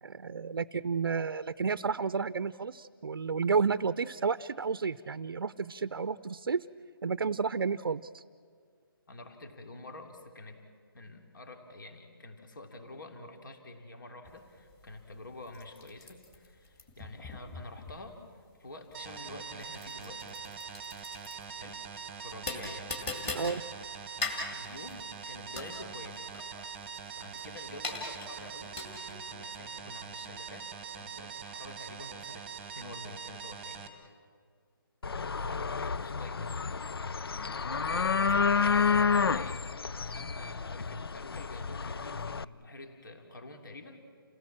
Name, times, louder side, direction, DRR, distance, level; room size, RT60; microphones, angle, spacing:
voice 1, 0.0-6.6 7.0-8.2 23.3-23.6, right 5 dB, 70° right, 14 dB, 0.6 m, -31 dB
voice 2, 9.1-10.6 10.9-18.2 18.6-20.4 21.6-21.8 22.2-22.9 24.3-26.2 27.1-33.9 35.3-36.8 37.4-39.6 40.0-44.0, left 2 dB, 60° left, 4 dB, 3.1 m, -48 dB
sound 1, 14.2-29.3, left 3 dB, 10° left, 2.2 m, -42 dB
sound 2, 18.9-33.9, right 6 dB, 10° right, 1.3 m, -43 dB
sound 3, 35.0-42.4, left 5 dB, 85° left, 0.6 m, -30 dB
29.0 x 17.5 x 7.4 m, 2.1 s
hypercardioid pair, 170°, 12 cm